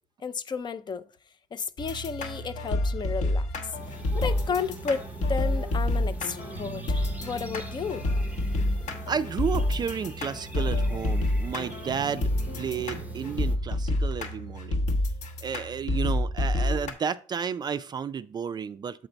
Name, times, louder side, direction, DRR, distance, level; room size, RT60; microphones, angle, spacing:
voice 1, 0.2-1.0 1.5-3.5 4.1-5.0 5.3-8.1, left 5 dB, 35° left, 0.5 m, -32 dB
sound 1, 1.8-16.9, left 1 dB, 65° left, 1.1 m, -29 dB
sound 2, 3.7-13.6, right 2 dB, 10° right, 0.7 m, -43 dB
voice 2, 9.1-12.3 12.6-14.9 15.4-19.1, right 7 dB, 35° right, 0.3 m, -32 dB
7.9 x 3.9 x 4.4 m
cardioid pair, 115°, 13 cm